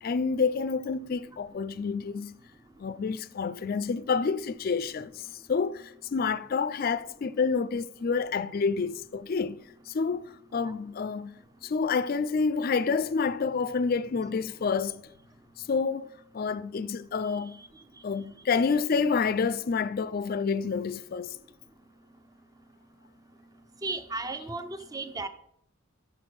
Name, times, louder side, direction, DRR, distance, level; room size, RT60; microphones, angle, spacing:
voice 1, 0.0-2.3 2.8-9.6 9.9-10.2 10.5-11.3 11.6-15.0 15.6-16.1 16.3-17.6 18.0-21.4, left 5 dB, 45° left, 0.3 m, -28 dB
voice 2, 23.8-25.3, right 3 dB, 15° right, 0.5 m, -35 dB
6.6 x 6.3 x 6.0 m
head